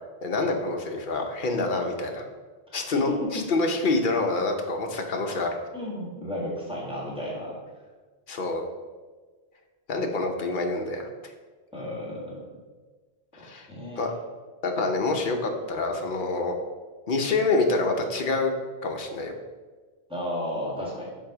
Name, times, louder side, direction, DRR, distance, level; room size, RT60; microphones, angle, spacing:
voice 1, 0.2-2.3 2.7-5.5 8.3-8.6 9.9-11.1 13.4-13.7 13.9-14.1 14.6-16.6 17.1-18.5 18.8-19.3, left 3 dB, 55° left, 3 dB, 0.9 m, -26 dB
voice 2, 2.7-3.5 5.7-7.6 11.7-12.5 13.4-14.1 20.1-21.1, left 1 dB, 5° right, -5 dB, 1.6 m, -33 dB
7.5 x 2.7 x 4.9 m, 1.4 s
omnidirectional pair, 1.1 m